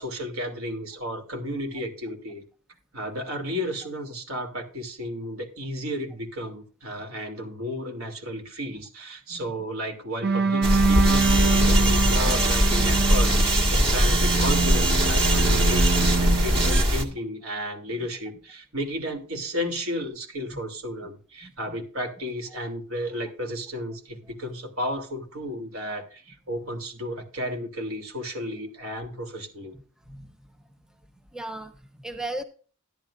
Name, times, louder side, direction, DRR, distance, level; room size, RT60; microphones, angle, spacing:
voice 1, 0.0-2.4 2.9-29.7, equal, 85° right, 4 dB, 2.8 m, -33 dB
sound 1, 10.2-16.8, right 4 dB, 50° right, 0.7 m, -25 dB
sound 2, 10.6-17.0, equal, 25° right, 1.7 m, -21 dB
voice 2, 21.4-21.8 30.1-30.4 31.3-32.4, right 1 dB, 5° right, 6 dB, 0.9 m, -37 dB
14.0 x 11.0 x 2.5 m, 0.38 s
head